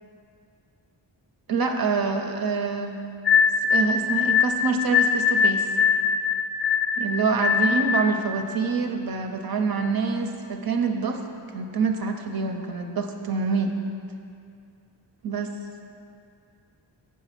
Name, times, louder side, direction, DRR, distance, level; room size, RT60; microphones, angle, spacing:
voice 1, 1.5-3.0 3.7-5.7 7.0-11.2 11.5-13.7 15.2-15.5, right 4 dB, 50° right, 4 dB, 0.6 m, -26 dB
sound 1, 3.2-8.1, left 6 dB, 25° left, 0.4 m, -21 dB
7.4 x 6.0 x 5.7 m, 2.5 s
wide cardioid pair, 140°, 47 cm